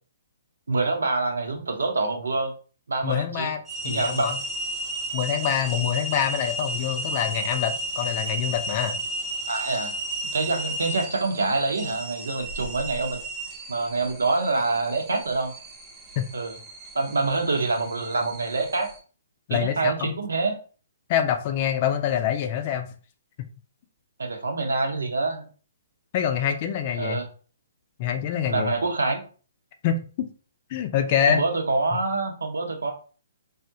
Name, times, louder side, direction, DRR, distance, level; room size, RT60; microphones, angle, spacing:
voice 1, 0.7-2.5 2.9-3.5 3.8-4.3 9.5-10.0 10.2-13.2 13.7-15.5 16.3-16.6 16.9-18.9 19.5-20.6 24.2-25.5 27.0-27.3 28.5-29.2 31.3-32.9, right 3 dB, 90° right, 3 dB, 0.8 m, -26 dB
voice 2, 3.0-4.4 5.1-9.0 16.2-16.3 19.5-20.1 21.1-22.9 23.4-23.5 26.1-27.2 28.0-28.7 29.8-30.3 30.7-31.4 31.9-32.0, left 9 dB, 40° left, 7 dB, 0.5 m, -26 dB
sound 1, 3.7-19.0, right 1 dB, 15° right, 1.0 m, -33 dB
3.5 x 2.4 x 2.7 m, 0.38 s
hypercardioid pair, 140°, 0 cm